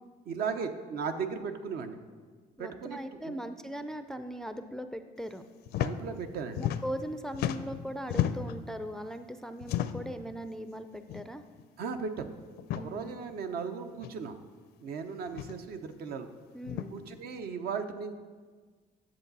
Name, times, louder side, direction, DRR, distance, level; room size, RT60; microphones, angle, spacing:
voice 1, 0.3-2.0 2.6-3.0 3.2-3.4 5.8-6.7 11.8-12.3 12.7-14.4 14.8-16.3 16.9-18.2, right 5 dB, 65° right, 7 dB, 0.8 m, -36 dB
voice 2, 2.6-5.4 6.6-11.4 12.7-13.1 16.5-17.0, equal, 5° left, 9 dB, 0.4 m, -39 dB
sound 1, 5.7-5.9 6.2-7.1 7.3-8.6 9.6-10.2 11.1-11.3 11.6-11.7 12.6-12.9 14.0-14.1 15.3-15.6 16.6-16.9, left 11 dB, 75° left, 0.5 m, -33 dB
10.5 x 7.1 x 4.0 m, 1.5 s
cardioid pair, 110°, 17 cm